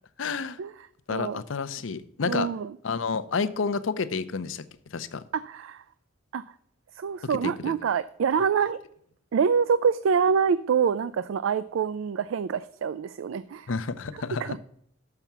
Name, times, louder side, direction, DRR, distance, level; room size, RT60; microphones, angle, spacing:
voice 1, 0.2-0.6 1.1-2.5 2.8-4.6 4.9-5.2 7.4-7.7 8.3-8.7 13.7-14.6, left 5 dB, 75° left, 12 dB, 0.6 m, -30 dB
voice 2, 1.1-1.4 2.3-2.7 5.3-5.8 6.3-6.4 7.0-8.8 9.3-13.7 14.5-14.6, right 6 dB, 80° right, 15 dB, 0.3 m, -26 dB
6.8 x 5.9 x 7.2 m, 0.69 s
head